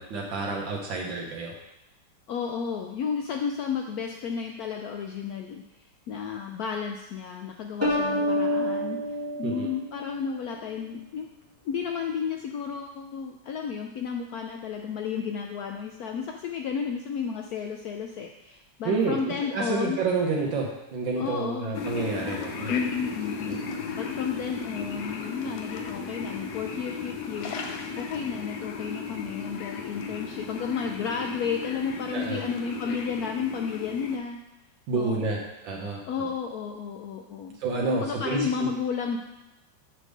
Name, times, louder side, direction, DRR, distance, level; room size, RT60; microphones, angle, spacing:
voice 1, 0.0-1.5 9.4-9.7 18.8-19.2 19.5-22.7 23.5-23.6 32.1-32.4 34.9-36.0 37.6-38.7, right 4 dB, 70° right, -1 dB, 1.7 m, -29 dB
voice 2, 2.3-9.0 9.4-11.3 11.6-20.0 21.2-21.8 22.7-23.6 24.0-27.5 28.0-34.4 34.9-35.4 36.1-37.6 37.8-39.2, left 6 dB, 85° left, 3 dB, 0.8 m, -32 dB
sound 1, 7.8-10.4, equal, 10° right, 1.1 m, -28 dB
sound 2, 21.7-34.2, left 5 dB, 65° left, 1.1 m, -35 dB
7.4 x 3.4 x 6.3 m, 0.94 s
omnidirectional pair, 2.2 m